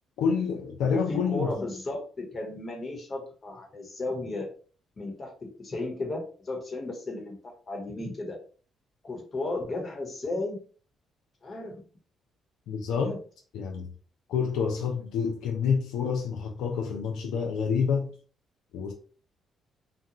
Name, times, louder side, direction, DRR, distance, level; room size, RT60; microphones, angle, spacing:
voice 1, 0.2-1.5 12.7-13.2 13.5-13.9 14.3-18.1 18.7-18.9, left 6 dB, 85° left, 0.4 m, -28 dB
voice 2, 0.8-4.5 5.0-5.3 5.6-7.4 7.7-8.4 9.0-10.6 11.4-11.8 13.0-13.2, left 2 dB, 40° left, 1.1 m, -34 dB
2.5 x 2.3 x 2.9 m
cardioid pair, 90°, 0 cm